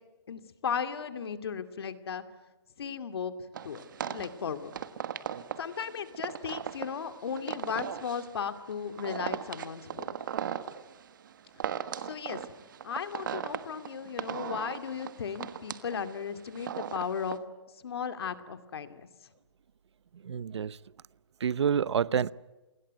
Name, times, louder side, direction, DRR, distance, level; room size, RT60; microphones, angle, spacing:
voice 1, 0.3-2.2 2.8-3.3 3.6-4.8 5.6-10.2 12.0-12.4 12.8-17.4 17.7-19.1, left 7 dB, 60° left, 10 dB, 2.5 m, -36 dB
sound 1, 3.5-17.4, right 9 dB, 45° right, 1.5 m, -38 dB
voice 2, 20.3-20.7 21.4-22.3, right 7 dB, 75° right, 20 dB, 0.8 m, -27 dB
29.0 x 21.0 x 9.3 m, 1.1 s
hypercardioid pair, 170°, 14 cm